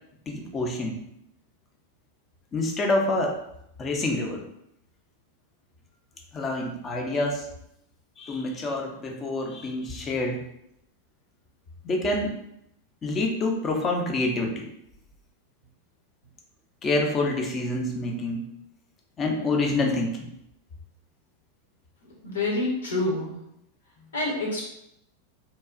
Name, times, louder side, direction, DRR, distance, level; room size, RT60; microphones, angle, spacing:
voice 1, 0.3-1.0 2.5-3.4 3.8-4.4 6.3-7.5 8.2-10.4 11.8-12.3 13.0-14.7 16.8-18.5 19.2-20.3, left 2 dB, 25° left, 1 dB, 0.6 m, -27 dB
voice 2, 22.0-23.3 24.1-24.6, left 2 dB, 70° left, -3 dB, 1.0 m, -27 dB
2.8 x 2.3 x 2.4 m, 0.77 s
figure-of-eight pair, 90°, 0 cm